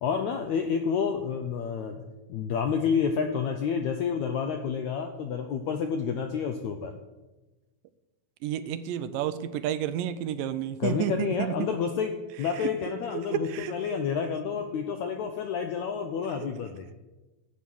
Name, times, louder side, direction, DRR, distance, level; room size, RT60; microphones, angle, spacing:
voice 1, 0.0-6.9 10.8-16.9, left 6 dB, 80° left, 5 dB, 1.6 m, -29 dB
voice 2, 8.4-11.7 12.6-12.7 13.3-13.7, right 10 dB, 80° right, 12 dB, 2.1 m, -30 dB
11.0 x 8.4 x 6.2 m, 1.1 s
omnidirectional pair, 4.1 m